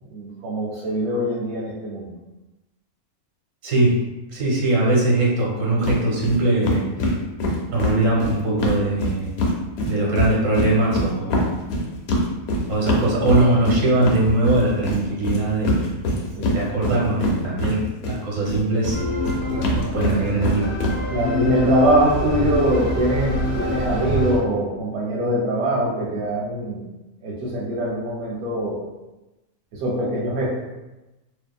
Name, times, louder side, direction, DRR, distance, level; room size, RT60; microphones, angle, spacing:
voice 1, 0.1-2.1 16.4-16.6 21.1-26.8 27.2-28.9 29.7-30.5, right 1 dB, 85° right, -5 dB, 1.0 m, -23 dB
voice 2, 3.6-4.0 4.3-6.9 7.7-9.3 9.8-11.4 12.7-15.8 16.5-17.8 18.1-19.0 19.7-20.7, right 2 dB, 65° right, -3 dB, 1.3 m, -21 dB
sound 1, 5.8-6.0 6.2-6.4 6.6-9.5 9.8-18.2 18.4-20.9, left 1 dB, 85° left, 1.0 m, -23 dB
sound 2, 18.9-24.4, left 1 dB, 40° right, 0.7 m, -25 dB
2.7 x 2.3 x 2.2 m, 1.0 s
omnidirectional pair, 1.5 m